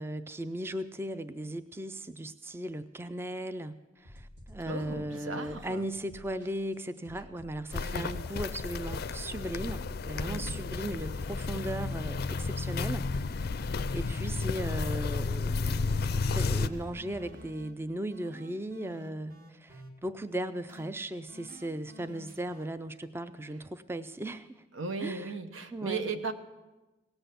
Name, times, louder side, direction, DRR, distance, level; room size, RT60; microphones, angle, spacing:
voice 1, 0.0-24.6 25.0-25.3 25.7-26.1, right 1 dB, 10° right, 12 dB, 0.4 m, -37 dB
sound 1, 4.0-14.7, equal, 65° right, 1.7 m, -52 dB
voice 2, 4.6-5.9 7.8-8.3 10.3-10.6 24.7-26.3, right 4 dB, 90° right, 9 dB, 1.0 m, -37 dB
Walk footsteps, 7.7-16.7, left 4 dB, 55° left, 0.4 m, -32 dB
sound 2, 16.5-17.7 18.1-19.9 20.7-20.9 21.3-22.7, left 1 dB, 45° right, 1.7 m, -50 dB
17.5 x 8.0 x 6.7 m, 1.1 s
head